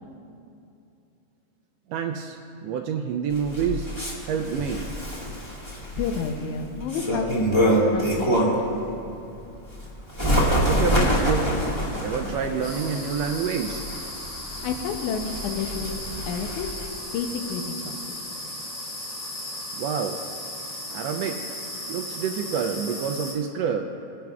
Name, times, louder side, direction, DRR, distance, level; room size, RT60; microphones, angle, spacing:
voice 1, 1.9-3.9 4.3-4.9 10.6-11.5 12.0-13.8 19.8-20.2 20.9-21.4 21.9-23.9, right 7 dB, 85° right, 3 dB, 1.4 m, -27 dB
Bird, 3.3-8.7 9.2-16.9, equal, 15° left, 1.0 m, -26 dB
voice 2, 6.0-7.4 7.9-8.8 14.6-16.0 16.3-16.7 17.1-18.2, left 6 dB, 85° left, 4 dB, 2.2 m, -30 dB
sound 1, 12.6-23.3, left 1 dB, 60° left, 4.1 m, -36 dB
23.0 x 10.5 x 2.4 m, 2.7 s
omnidirectional pair, 3.4 m